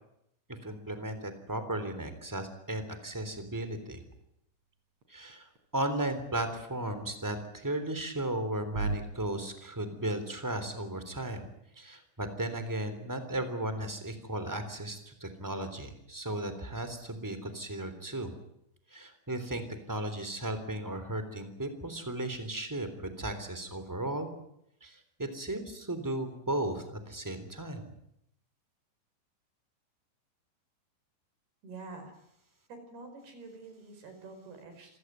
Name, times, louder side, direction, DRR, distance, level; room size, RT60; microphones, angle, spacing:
voice 1, 0.5-4.0 5.1-11.4 11.7-18.3 18.9-24.3 24.8-27.9, right 1 dB, 5° right, 9 dB, 2.6 m, -35 dB
sound 1, 4.2-9.0, right 4 dB, 40° right, 3.9 m, -44 dB
voice 2, 31.6-32.1 32.7-35.0, right 3 dB, 60° right, 7 dB, 6.8 m, -47 dB
28.0 x 16.0 x 9.4 m, 0.77 s
omnidirectional pair, 5.3 m